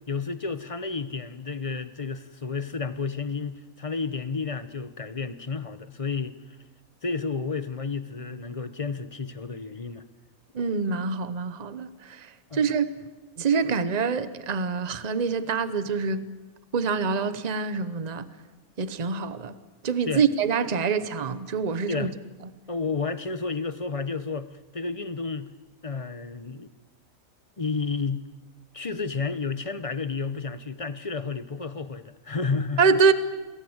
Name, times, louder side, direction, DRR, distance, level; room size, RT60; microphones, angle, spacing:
voice 1, 0.1-6.3 7.0-10.0 12.5-12.6 20.0-20.2 21.9-22.1 22.7-25.5 25.8-26.7 27.6-28.3 28.7-32.8, left 4 dB, 30° left, 0.9 m, -31 dB
voice 2, 10.5-12.3 12.5-12.9 13.4-16.2 16.7-18.3 18.8-19.5 19.8-22.1 32.8-33.1, right 5 dB, 30° right, 1.0 m, -25 dB
28.5 x 21.0 x 8.0 m
omnidirectional pair, 1.5 m